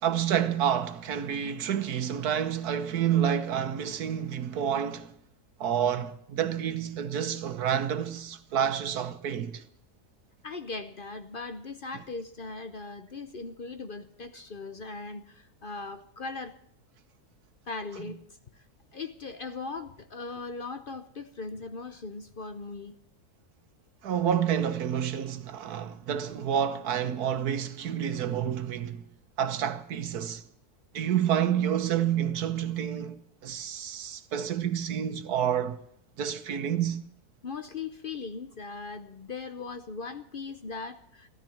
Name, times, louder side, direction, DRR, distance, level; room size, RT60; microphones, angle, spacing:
voice 1, 0.0-5.1 5.6-9.6 24.0-29.0 29.4-30.4 30.9-35.8 36.2-37.0, right 9 dB, 80° right, 1.5 m, -29 dB
voice 2, 10.4-16.6 17.7-18.2 18.5-18.6 18.9-23.0 37.4-41.3, left 4 dB, 45° left, 0.7 m, -39 dB
14.5 x 13.5 x 7.1 m
omnidirectional pair, 1.6 m